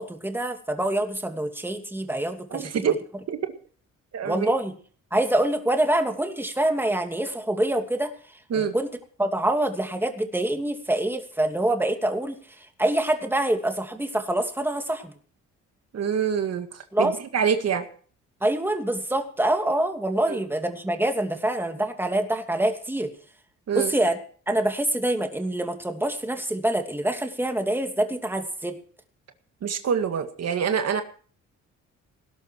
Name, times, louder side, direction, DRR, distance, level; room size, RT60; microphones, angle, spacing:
voice 1, 0.0-2.7 4.2-4.7 5.1-8.1 8.5-8.9 9.2-15.1 16.9-17.1 18.4-23.1 23.7-24.2 24.5-28.8, right 1 dB, 5° right, 5 dB, 2.7 m, -25 dB
voice 2, 2.5-3.0 3.3-3.4 4.1-4.5 8.5-8.7 15.9-17.9 20.3-20.4 23.7-23.9 29.6-31.0, right 7 dB, 55° right, 7 dB, 2.0 m, -26 dB
19.0 x 11.5 x 4.7 m, 0.43 s
cardioid pair, 90°, 30 cm